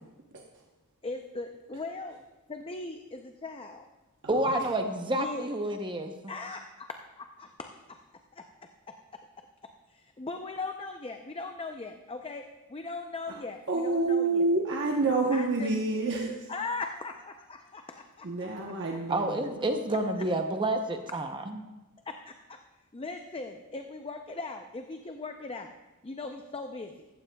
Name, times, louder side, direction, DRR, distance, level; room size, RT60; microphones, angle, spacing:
voice 1, 1.0-2.2 2.5-3.9 5.1-5.5 6.3-8.0 8.3-8.5 8.9-9.2 9.9-14.5 15.3-15.7 16.5-18.7 22.1-22.6 22.9-25.7 26.0-27.1, left 3 dB, 25° left, 5 dB, 0.6 m, -39 dB
voice 2, 4.3-6.1 19.1-21.6, right 1 dB, 20° right, 5 dB, 0.7 m, -29 dB
voice 3, 13.7-16.3 18.2-19.5, right 3 dB, 55° right, 0 dB, 1.0 m, -28 dB
15.0 x 14.0 x 2.3 m, 1.1 s
head